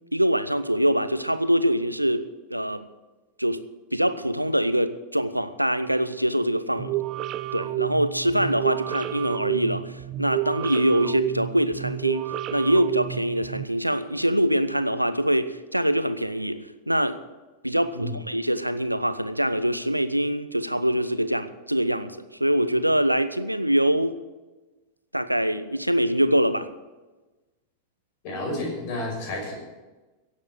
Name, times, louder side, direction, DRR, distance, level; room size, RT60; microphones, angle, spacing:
voice 1, 0.1-2.9 3.4-6.9 7.5-17.2 17.6-24.2 25.1-26.7, equal, 90° right, 12 dB, 0.7 m, -24 dB
sound 1, 6.8-13.7, right 15 dB, 35° right, 0.5 m, -30 dB
voice 2, 28.2-29.5, left 1 dB, 45° left, 0 dB, 5.9 m, -31 dB
16.5 x 7.6 x 7.4 m, 1.2 s
figure-of-eight pair, 90°, 0 cm